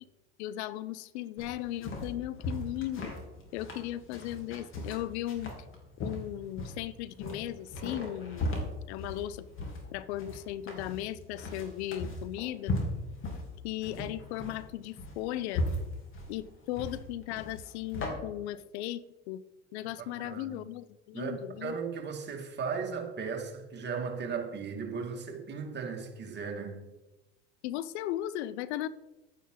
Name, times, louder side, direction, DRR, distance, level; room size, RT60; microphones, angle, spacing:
voice 1, 0.4-3.1 3.5-5.5 6.0-8.6 8.9-9.5 9.9-12.7 13.6-15.7 16.3-19.4 19.7-21.8 27.6-28.9, left 13 dB, 75° left, 0.6 m, -37 dB
sound 1, 1.4-18.1, left 2 dB, 40° left, 3.5 m, -37 dB
voice 2, 20.0-20.7 21.1-21.3 21.6-26.8, right 5 dB, 30° right, 2.4 m, -36 dB
11.0 x 9.6 x 4.0 m
hypercardioid pair, 90°, 33 cm